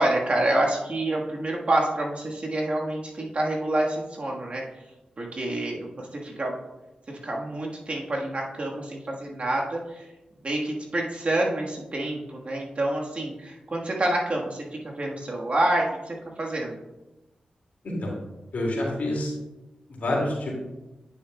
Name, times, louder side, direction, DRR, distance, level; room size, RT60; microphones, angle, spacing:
voice 1, 0.0-4.6 5.2-6.6 7.1-10.1 10.4-16.7, right 1 dB, 50° right, -1 dB, 1.5 m, -27 dB
voice 2, 18.5-19.3 20.0-20.6, left 1 dB, 75° left, -2 dB, 2.3 m, -27 dB
9.2 x 6.8 x 2.3 m, 1.0 s
cardioid pair, 50°, 3 cm